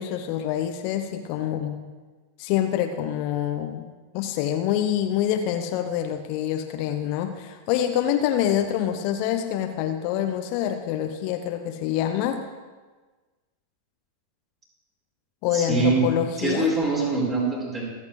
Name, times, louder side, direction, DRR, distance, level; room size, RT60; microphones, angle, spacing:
voice 1, 0.0-1.8 2.4-3.9 4.1-12.4 15.4-16.7, left 10 dB, 45° left, 7 dB, 0.8 m, -26 dB
voice 2, 15.5-16.0 16.4-17.8, right 3 dB, 25° right, -3 dB, 4.6 m, -23 dB
25.5 x 8.6 x 3.2 m, 1.3 s
figure-of-eight pair, 90°, 0 cm